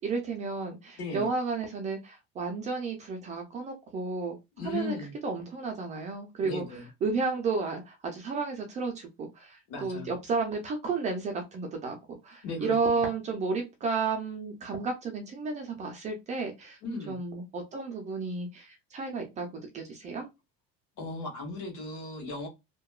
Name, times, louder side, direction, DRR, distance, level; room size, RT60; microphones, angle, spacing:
voice 1, 0.0-4.4 4.6-5.0 5.2-6.6 7.0-16.8 17.1-20.2, right 4 dB, 25° right, 0.4 m, -32 dB
voice 2, 4.6-5.1 6.4-6.9 9.7-10.1 12.4-12.7 16.8-17.2 21.0-22.5, left 3 dB, 60° left, 1.5 m, -37 dB
2.8 x 2.2 x 2.3 m
cardioid pair, 175°, 30 cm